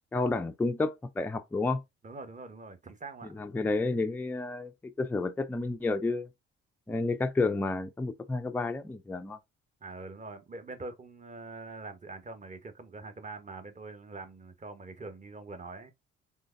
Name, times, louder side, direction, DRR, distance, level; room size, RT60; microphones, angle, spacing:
voice 1, 0.1-1.8 3.3-4.7 5.0-6.3 6.9-9.4, left 3 dB, 5° left, 0.4 m, -30 dB
voice 2, 2.0-3.4 9.8-15.9, right 3 dB, 25° right, 1.0 m, -44 dB
3.8 x 3.2 x 2.5 m
hypercardioid pair, 50°, 32 cm